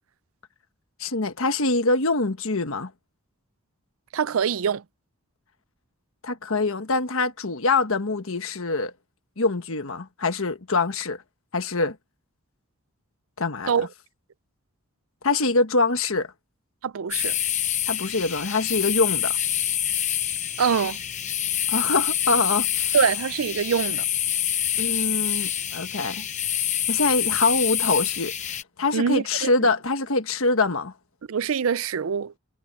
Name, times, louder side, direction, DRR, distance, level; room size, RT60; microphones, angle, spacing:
voice 1, 1.0-2.9 6.2-8.9 9.4-11.2 11.5-12.0 13.4-13.9 15.2-16.3 17.9-19.4 21.7-22.7 24.8-26.2 26.9-28.3 28.8-30.9, left 3 dB, 65° left, 1.4 m, -24 dB
voice 2, 4.1-4.8 13.7-13.9 16.8-17.4 20.6-21.0 22.9-24.0 28.9-29.5 31.3-32.3, right 6 dB, 65° right, 0.5 m, -24 dB
sound 1, 17.1-28.6, left 11 dB, 30° left, 0.8 m, -26 dB
head